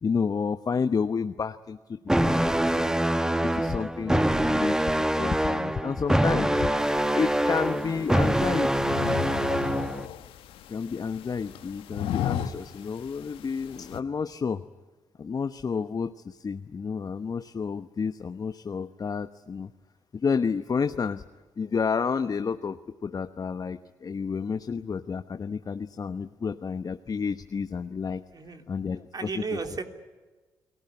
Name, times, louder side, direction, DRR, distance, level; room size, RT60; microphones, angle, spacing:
voice 1, 0.0-2.9 3.2-8.9 10.7-14.6 15.2-19.7 20.1-21.2 21.6-28.2 28.7-29.1 29.5-29.6, left 5 dB, 45° left, 10 dB, 1.0 m, -30 dB
sound 1, 2.1-10.1, right 1 dB, 5° right, 1.3 m, -25 dB
sound 2, 6.8-14.0, left 10 dB, 80° left, 1.3 m, -36 dB
voice 2, 29.1-29.8, right 4 dB, 45° right, 5 dB, 3.2 m, -33 dB
29.5 x 18.5 x 9.8 m, 1.3 s
hypercardioid pair, 50°, 9 cm